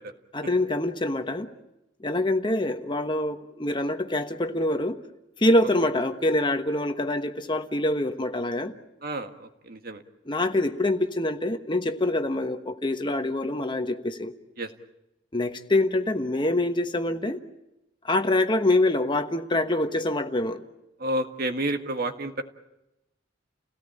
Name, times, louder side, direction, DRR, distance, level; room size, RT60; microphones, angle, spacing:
voice 1, 0.3-1.5 2.0-5.0 5.4-8.7 10.3-14.3 15.3-17.4 18.0-20.6, left 1 dB, 25° left, 7 dB, 1.2 m, -25 dB
voice 2, 9.0-10.0 14.6-14.7 21.0-22.4, right 1 dB, 50° right, 6 dB, 1.8 m, -30 dB
30.0 x 17.5 x 8.8 m, 0.92 s
head